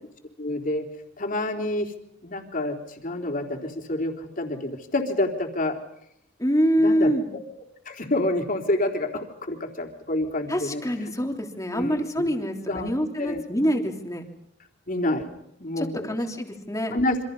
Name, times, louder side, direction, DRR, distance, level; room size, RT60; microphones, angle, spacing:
voice 1, 0.4-0.9 1.2-1.9 2.2-2.8 3.0-5.8 6.8-7.4 7.9-10.8 11.7-12.3 12.7-12.9 13.2-13.4 14.9-15.3 15.6-16.1 16.9-17.2, left 1 dB, 45° left, 3 dB, 3.7 m, -28 dB
voice 2, 6.4-7.3 10.5-14.2 15.8-16.9, equal, 15° left, 3 dB, 3.3 m, -25 dB
28.0 x 26.0 x 5.6 m, 0.76 s
head